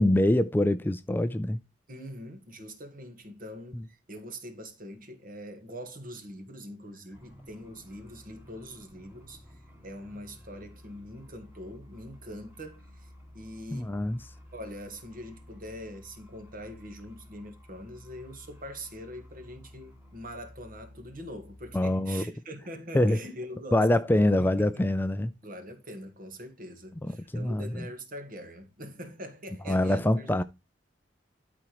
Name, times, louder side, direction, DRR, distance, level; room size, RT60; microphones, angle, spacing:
voice 1, 0.0-1.6 3.7-3.8 13.7-14.2 21.7-22.3 22.9-23.2 23.7-25.3 27.0-27.9 29.7-30.4, left 1 dB, 10° left, 0.4 m, -25 dB
voice 2, 1.9-13.1 13.3-14.0 14.5-24.1 24.4-24.9 25.4-30.4, equal, 50° right, 1.7 m, -43 dB
sound 1, 7.1-21.8, left 1 dB, 10° right, 2.0 m, -52 dB
12.5 x 4.4 x 3.1 m
head